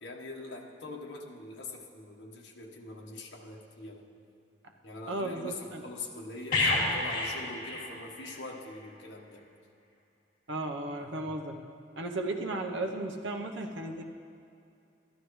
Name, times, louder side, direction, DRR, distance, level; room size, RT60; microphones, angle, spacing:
voice 1, 0.0-4.0 4.8-9.4, left 2 dB, 80° left, 0 dB, 1.3 m, -43 dB
voice 2, 5.1-5.8 10.5-11.6 12.0-14.0, right 2 dB, 85° right, 3 dB, 0.9 m, -35 dB
sound 1, 6.5-8.4 8.7-8.9, left 2 dB, 45° left, 2.5 m, -30 dB
13.0 x 12.5 x 3.2 m, 2.6 s
head